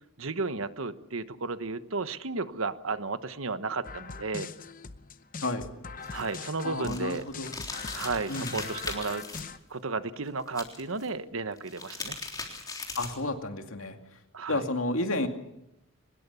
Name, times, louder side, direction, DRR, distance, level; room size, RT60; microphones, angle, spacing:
voice 1, 0.2-4.5 6.1-7.2 7.9-9.2 9.7-12.2 14.3-14.6, right 3 dB, 75° right, 12 dB, 1.2 m, -33 dB
sound 1, 3.8-9.6, left 5 dB, 40° left, 0.8 m, -42 dB
sound 2, 6.0-9.4 10.5-11.1 11.6-13.3, left 3 dB, 20° left, 3.5 m, -39 dB
voice 2, 6.6-7.5 8.3-8.6 13.0-14.0 14.5-15.3, left 2 dB, 75° left, 5 dB, 2.4 m, -31 dB
23.5 x 21.0 x 7.0 m, 0.86 s
head